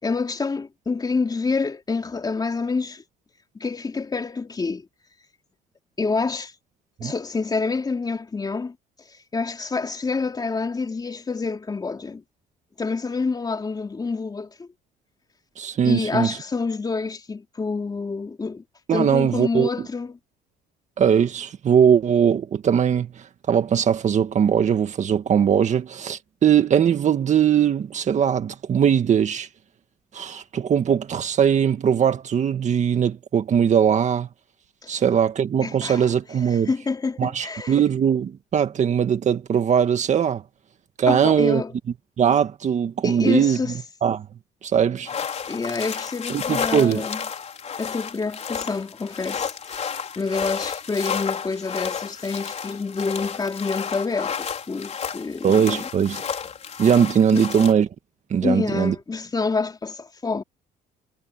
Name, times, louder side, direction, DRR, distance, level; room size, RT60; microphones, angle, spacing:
voice 1, 0.0-3.0 3.6-4.8 6.0-6.5 7.0-8.7 9.3-12.2 12.8-14.7 15.8-18.6 18.9-20.2 35.6-36.1 36.5-37.8 41.1-41.7 43.0-43.7 45.5-47.2 47.8-55.9 57.3-57.5 58.4-60.4, left 4 dB, 25° left, 3.5 m, -27 dB
voice 2, 15.6-16.4 18.9-19.7 21.0-23.1 23.5-29.5 30.1-34.3 34.9-36.7 37.2-40.4 41.0-41.6 42.2-43.6 44.0-44.3 44.6-45.1 46.3-47.0 55.4-56.2 56.8-57.9 58.3-59.0, right 8 dB, 45° right, 1.9 m, -20 dB
sound 1, 45.1-57.7, left 7 dB, 40° left, 4.4 m, -31 dB
cardioid pair, 110°, 17 cm